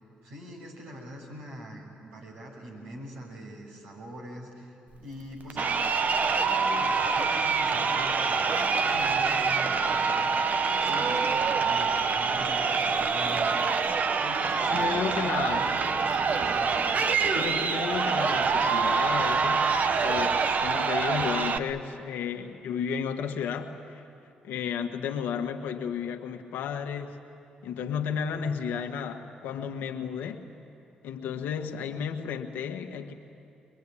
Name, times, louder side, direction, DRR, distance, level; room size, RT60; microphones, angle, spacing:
voice 1, 0.2-4.7 5.0-5.8 6.2-10.4 10.7-13.5 14.2-16.8, equal, 85° right, -2 dB, 6.7 m, -43 dB
Crowd, 5.5-21.6, right 5 dB, 55° right, 1.1 m, -25 dB
voice 2, 14.7-15.7 17.3-19.7 20.0-24.0 24.4-27.2 27.6-30.5 31.0-33.1, left 7 dB, 80° left, 5 dB, 1.6 m, -33 dB
24.0 x 21.5 x 9.9 m, 2.6 s
supercardioid pair, 50°, 3 cm